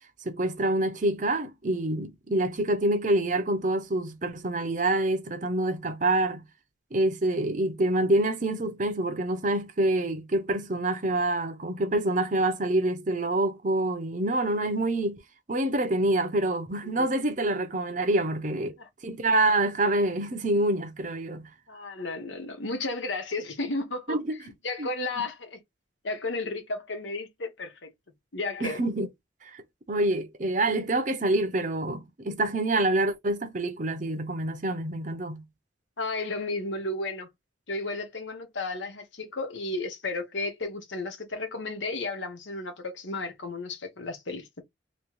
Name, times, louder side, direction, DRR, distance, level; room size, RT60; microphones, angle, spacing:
voice 1, 0.2-6.4 6.9-15.2 15.5-18.8 19.0-21.5 24.1-24.4 24.8-24.9 25.2-25.3 28.6-29.1 29.4-35.4, right 2 dB, 40° right, 0.8 m, -26 dB
voice 2, 21.7-24.2 24.6-25.6 26.0-27.9 28.3-28.8 36.0-37.3 37.7-44.6, left 2 dB, 80° left, 1.2 m, -33 dB
3.1 x 3.0 x 3.1 m
head